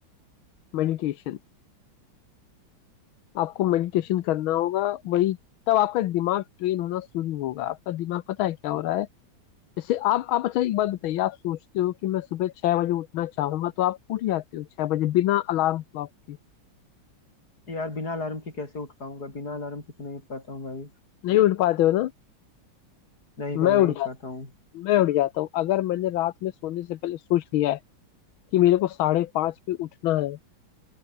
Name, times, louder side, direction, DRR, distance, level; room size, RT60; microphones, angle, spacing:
voice 1, 0.7-1.4 3.3-5.4 5.7-9.1 9.8-16.4 21.2-22.1 23.5-24.1 24.7-27.8 28.5-30.4, left 14 dB, 85° left, 1.7 m, -25 dB
voice 2, 17.7-20.9 23.4-24.5, left 2 dB, 50° left, 6.0 m, -34 dB
omnidirectional pair, 2.2 m